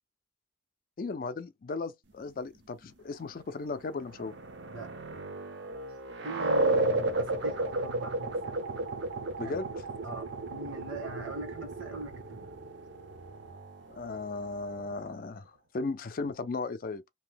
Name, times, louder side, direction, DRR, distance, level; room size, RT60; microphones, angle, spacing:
voice 1, 1.0-4.3 9.4-9.8 13.9-17.0, left 3 dB, 45° left, 0.4 m, -36 dB
sound 1, 3.8-15.2, right 2 dB, 60° right, 0.5 m, -33 dB
voice 2, 6.2-8.6 9.4-9.7 10.0-12.6, right 1 dB, 85° right, 1.5 m, -42 dB
2.8 x 2.1 x 3.3 m
head